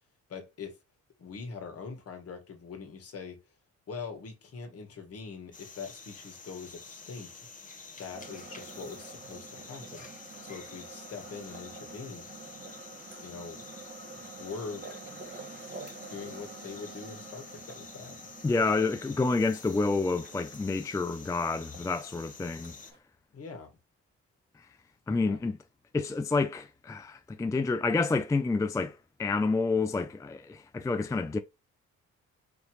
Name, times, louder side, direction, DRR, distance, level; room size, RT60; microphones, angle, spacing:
voice 1, 0.3-0.8 1.2-3.4 3.9-7.3 8.0-10.1 10.4-12.3 13.2-13.6 14.1-14.8 16.1-18.2 18.4-18.6 23.3-23.7 25.2-25.4, left 5 dB, 50° left, 1.7 m, -43 dB
sound 1, 5.5-22.9, left 4 dB, 25° left, 1.3 m, -49 dB
sound 2, 8.1-23.0, right 4 dB, 35° right, 1.5 m, -48 dB
voice 2, 18.4-22.7 25.1-25.6 25.9-31.4, left 3 dB, 10° left, 0.4 m, -29 dB
5.1 x 3.0 x 3.0 m
cardioid pair, 90°, 30 cm